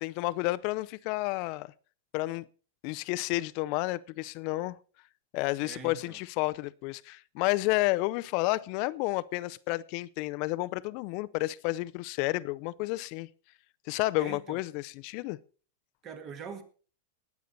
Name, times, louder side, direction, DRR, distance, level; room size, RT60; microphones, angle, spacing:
voice 1, 0.0-1.7 2.1-2.5 2.8-4.8 5.3-13.3 13.9-15.4, left 20 dB, 40° left, 0.5 m, -31 dB
voice 2, 5.6-6.2 14.2-14.6 16.0-16.6, right 5 dB, 25° right, 1.8 m, -43 dB
20.0 x 8.3 x 4.1 m
supercardioid pair, 160°, 0 cm